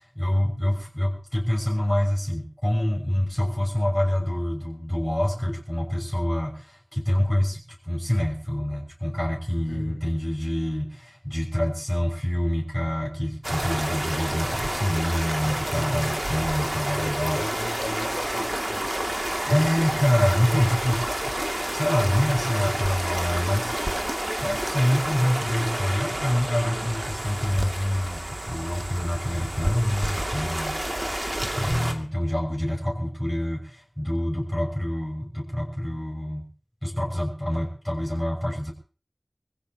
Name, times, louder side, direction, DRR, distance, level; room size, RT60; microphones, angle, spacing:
voice 1, 0.1-17.4 19.5-21.1 21.7-23.7 24.4-30.8 31.5-36.5 36.8-38.7, equal, 10° left, -1 dB, 6.2 m, -26 dB
voice 2, 9.7-10.0 16.8-18.9 37.5-37.7, left 1 dB, 60° left, -3 dB, 3.4 m, -36 dB
sound 1, 13.4-31.9, right 1 dB, 40° right, 2.5 m, -29 dB
25.5 x 16.0 x 3.0 m, 0.39 s
wide cardioid pair, 40°, 0 cm